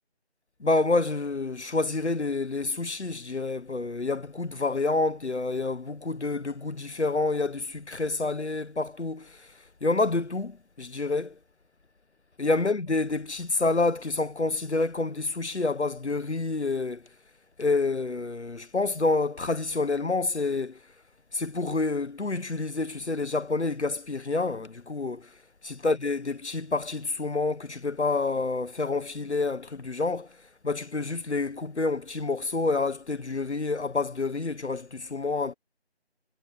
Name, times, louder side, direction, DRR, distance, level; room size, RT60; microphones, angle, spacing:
voice 1, 0.6-11.4 12.4-17.0 17.6-20.8 21.3-25.4 25.6-30.4 30.6-35.5, left 3 dB, 80° left, 1.4 m, -28 dB
figure-of-eight pair, 170°, 34 cm